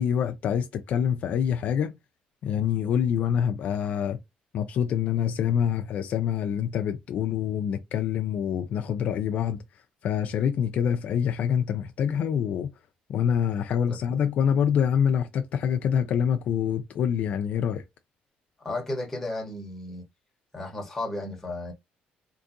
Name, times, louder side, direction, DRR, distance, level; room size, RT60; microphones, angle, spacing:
voice 1, 0.0-1.9 2.4-4.2 4.5-9.6 10.0-12.7 13.1-17.8, left 8 dB, 50° left, 0.4 m, -26 dB
voice 2, 13.9-14.3 18.6-20.0 20.5-21.7, left 2 dB, 10° left, 1.0 m, -34 dB
3.7 x 2.6 x 2.5 m
cardioid pair, 170°, 3 cm